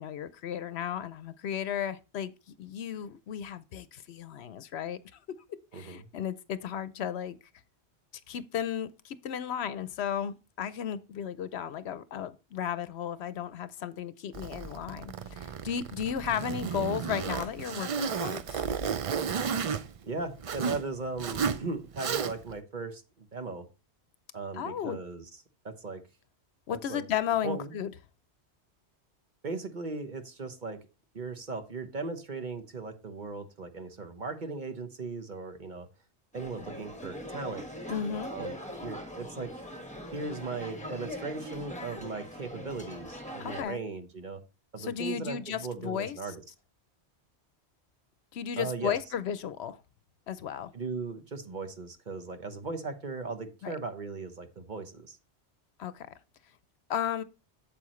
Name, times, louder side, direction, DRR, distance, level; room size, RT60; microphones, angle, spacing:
voice 1, 0.0-2.3 2.6-5.0 5.7-7.4 8.3-18.6 24.5-25.0 26.7-27.9 37.9-38.3 43.4-43.8 44.8-46.3 48.3-49.8 50.3-50.7 53.6-53.7 55.8-56.1 56.9-57.2, left 8 dB, 70° left, 0.9 m, -34 dB
Zipper (clothing), 14.3-20.8 21.2-21.6 21.9-22.6, right 6 dB, 60° right, 0.3 m, -33 dB
voice 2, 20.0-23.7 24.3-25.2 25.6-26.0 26.7-27.0 27.4-27.7 29.4-30.8 31.1-35.9 36.3-37.7 38.3-39.5 40.1-44.4 44.7-46.4 48.6-48.9 50.7-55.2, right 4 dB, 45° right, 1.2 m, -37 dB
sound 1, 36.3-43.6, equal, 5° left, 1.3 m, -41 dB
8.4 x 7.6 x 3.1 m
omnidirectional pair, 1.2 m